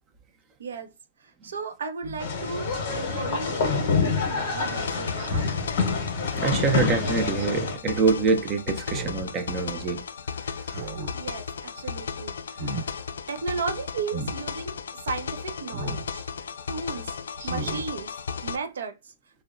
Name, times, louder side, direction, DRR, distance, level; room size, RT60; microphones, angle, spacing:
voice 1, 0.6-0.9 1.2-5.5 11.1-14.8 15.0-16.3 16.7-17.1 17.4-18.1 18.4-19.1, right 5 dB, 80° right, 0.6 m, -35 dB
Speech synthesizer, 2.0-2.2 3.7-3.9 5.2-5.7 7.0-7.5 8.8-9.3 9.7-9.8 10.6-11.1 11.5-11.8 12.4-12.9 14.1-14.4 15.7-16.1 16.5-16.6 17.3-17.8 18.3-18.4, right 2 dB, 45° right, 1.2 m, -35 dB
sound 1, 2.2-7.8, left 4 dB, 45° left, 0.8 m, -27 dB
sound 2, 4.5-18.6, left 6 dB, 85° left, 0.3 m, -35 dB
voice 2, 6.3-10.0 10.7-10.8, right 5 dB, 20° right, 0.4 m, -25 dB
2.8 x 2.1 x 2.4 m
hypercardioid pair, 165°, 0 cm